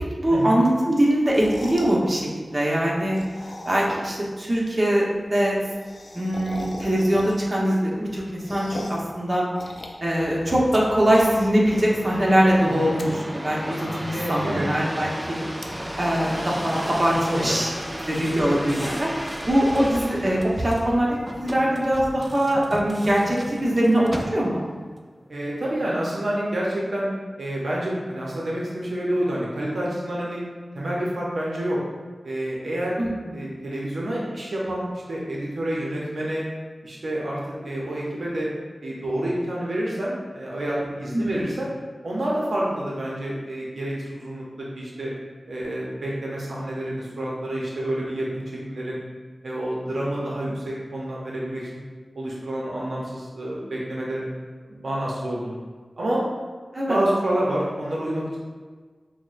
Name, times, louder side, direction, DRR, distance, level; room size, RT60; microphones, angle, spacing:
voice 1, 0.0-2.3 2.5-3.2 3.6-5.1 5.3-5.6 6.1-9.5 10.0-15.5 16.0-17.7 18.1-21.1 21.4-24.7 33.0-33.5 41.1-41.4 56.7-57.0, equal, 40° right, -4 dB, 0.9 m, -22 dB
sound 1, 1.2-2.0 3.0-4.1 4.4-4.5 4.7-4.8 5.1-5.2 5.4-7.6 8.0-9.1 9.6-10.8 11.0-11.6 12.0-12.1 12.8-13.0 13.5-13.6 13.8-14.4 15.5-15.7 16.1-16.9, left 1 dB, 65° left, 0.4 m, -38 dB
sound 2, 10.2-24.8 25.3-25.9, equal, 15° right, 0.4 m, -34 dB
voice 2, 14.1-14.7 17.3-17.6 25.3-27.1 27.4-30.4 30.7-31.8 32.2-33.0 33.3-36.4 36.8-38.5 38.8-41.7 42.0-44.5 44.7-45.1 45.5-49.0 49.4-51.8 52.1-54.3 54.7-55.6 56.0-56.3 56.9-58.4, right 1 dB, 80° right, -5 dB, 0.6 m, -28 dB
6.1 x 2.1 x 2.5 m, 1.5 s
wide cardioid pair, 60°, 0 cm